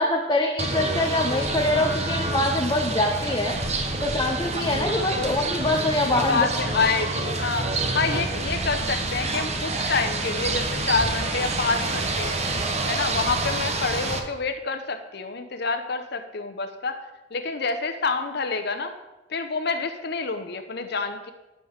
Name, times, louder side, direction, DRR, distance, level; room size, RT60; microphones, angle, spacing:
voice 1, 0.0-3.6 4.0-6.4, left 1 dB, 20° left, 1 dB, 0.7 m, -24 dB
sound 1, 0.6-14.2, right 2 dB, 35° right, 0.9 m, -27 dB
voice 2, 4.9-5.3 6.1-7.7 7.9-12.4 12.8-17.0 17.3-18.9 19.3-21.3, left 4 dB, 55° left, 8 dB, 0.8 m, -27 dB
10.0 x 5.3 x 6.4 m, 1.0 s
head